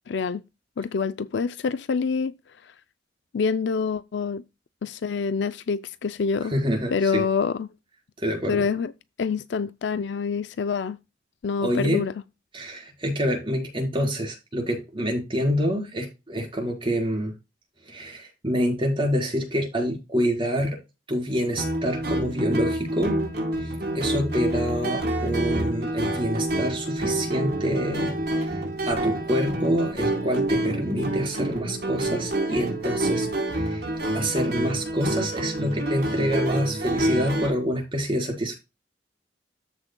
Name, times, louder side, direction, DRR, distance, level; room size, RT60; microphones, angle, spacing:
voice 1, 0.1-0.4 0.8-2.3 3.3-4.4 4.8-6.5 6.9-7.7 8.5-8.9 9.2-11.0 11.4-12.1, left 5 dB, 70° left, 0.4 m, -26 dB
voice 2, 6.5-7.2 8.2-8.7 11.6-12.0 12.5-17.3 17.8-20.8 21.1-23.1 23.6-28.6 28.9-33.3 33.5-33.9 34.1-38.5, equal, 30° right, 4.2 m, -27 dB
sound 1, 21.6-37.5, right 1 dB, 60° right, 4.0 m, -27 dB
13.5 x 6.2 x 2.2 m
head